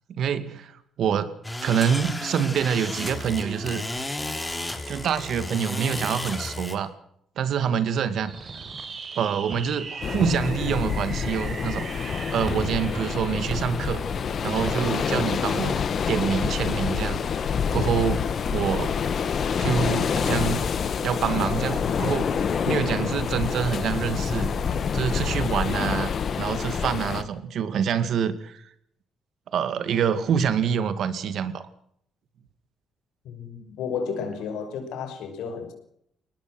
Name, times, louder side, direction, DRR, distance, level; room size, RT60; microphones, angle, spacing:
voice 1, 0.1-0.7 1.0-1.3 1.6-3.8 4.9-6.9 7.4-8.3 9.2-11.9 12.3-14.0 14.4-17.2 17.7-19.0 19.6-20.6 21.0-22.3 22.7-24.5 24.9-28.6 29.5-31.6, right 7 dB, 70° right, 2.3 m, -26 dB
sound 1, 1.4-6.7, left 2 dB, 15° left, 3.5 m, -33 dB
Fireworks, 8.2-16.3, right 4 dB, 45° right, 4.7 m, -37 dB
sound 2, 10.0-27.2, left 6 dB, 55° left, 2.0 m, -27 dB
voice 2, 33.2-35.7, left 6 dB, 90° left, 6.0 m, -32 dB
22.5 x 19.0 x 6.2 m
cardioid pair, 90°, 0 cm